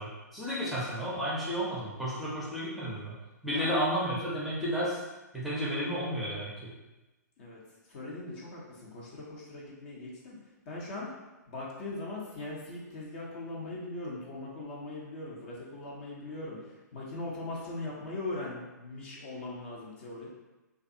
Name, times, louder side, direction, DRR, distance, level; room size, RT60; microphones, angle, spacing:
voice 1, 0.0-3.1 3.4-5.0 5.3-6.7, equal, ahead, -9 dB, 0.7 m, -32 dB
voice 2, 7.9-10.4 10.7-11.1 11.5-16.6 16.9-20.3, left 2 dB, 40° left, -4 dB, 0.7 m, -40 dB
2.5 x 2.4 x 2.6 m, 1.1 s
figure-of-eight pair, 120°, 10 cm